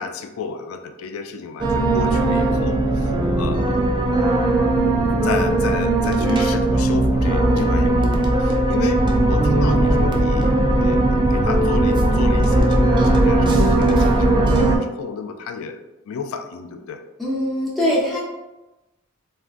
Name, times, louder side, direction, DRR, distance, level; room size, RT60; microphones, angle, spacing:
voice 1, 0.0-3.8 5.0-15.8 16.1-17.0 17.9-18.2, left 5 dB, 80° left, 7 dB, 0.3 m, -32 dB
sound 1, 1.6-14.8, right 2 dB, 20° right, 0.3 m, -18 dB
voice 2, 17.2-18.2, left 1 dB, ahead, -8 dB, 0.7 m, -22 dB
3.5 x 2.4 x 2.4 m, 1.0 s
head